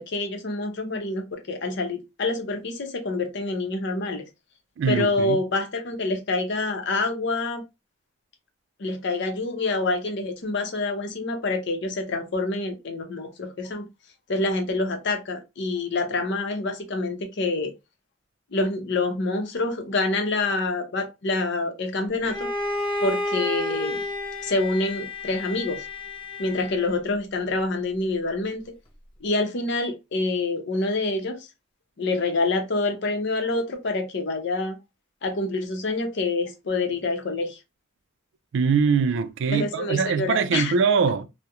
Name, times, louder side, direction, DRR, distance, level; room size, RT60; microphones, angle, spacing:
voice 1, 0.0-4.2 4.9-7.6 8.8-13.8 14.3-17.7 18.5-22.5 23.0-24.0 24.4-25.9 26.4-28.7 29.2-31.5 32.0-34.8 35.2-37.6 39.5-40.7, left 2 dB, 65° left, 0.6 m, -27 dB
voice 2, 4.8-5.4 38.5-41.3, right 5 dB, 70° right, 0.3 m, -22 dB
Bowed string instrument, 22.2-27.0, left 2 dB, 25° left, 0.5 m, -31 dB
2.3 x 2.1 x 2.8 m
head